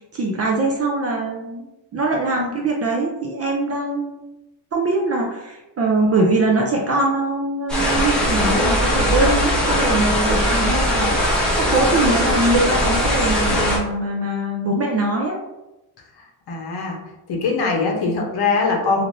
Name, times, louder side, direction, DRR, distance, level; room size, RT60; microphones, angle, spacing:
voice 1, 0.1-1.7 1.9-4.1 4.7-11.1 11.7-15.4, right 2 dB, 35° right, -1 dB, 0.4 m, -22 dB
sound 1, 7.7-13.8, equal, ahead, 0.8 m, -19 dB
voice 2, 16.2-19.0, left 4 dB, 50° left, 0 dB, 0.8 m, -22 dB
3.1 x 2.6 x 2.6 m, 0.97 s
cardioid pair, 135°, 49 cm